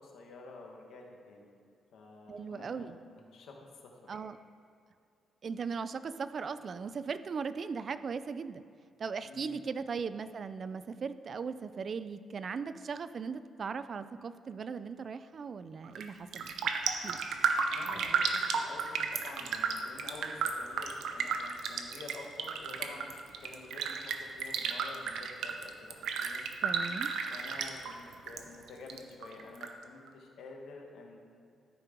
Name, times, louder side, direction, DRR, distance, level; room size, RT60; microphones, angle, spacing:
voice 1, 0.0-1.5 1.9-3.5 4.0-4.2 9.2-9.6 17.7-23.1 23.4-26.4 27.3-31.2, left 3 dB, 75° left, 1 dB, 1.4 m, -49 dB
voice 2, 2.3-3.0 4.1-4.4 5.4-8.6 9.0-16.6 17.0-17.2 26.6-27.1, right 5 dB, 45° right, 13 dB, 0.3 m, -38 dB
Raindrop, 15.8-16.1 16.3-28.4 28.7-29.7 30.1-30.2, right 6 dB, 80° right, 0.6 m, -33 dB
13.0 x 4.6 x 5.1 m, 2.4 s
cardioid pair, 130°, 0 cm